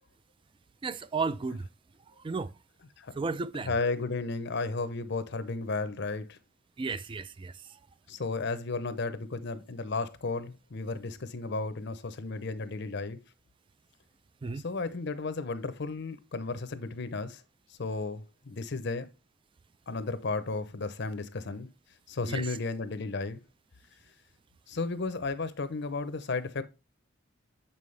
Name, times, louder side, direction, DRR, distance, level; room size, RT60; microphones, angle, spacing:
voice 1, 0.8-1.7 2.2-2.5 3.2-3.7 6.8-7.5 14.4-14.6 22.3-22.5, right 4 dB, 25° right, 0.3 m, -33 dB
voice 2, 3.6-6.4 8.1-13.2 14.6-17.4 17.8-19.1 19.9-21.7 22.1-23.4 24.7-26.6, left 3 dB, 55° left, 0.6 m, -33 dB
7.2 x 5.5 x 3.2 m
head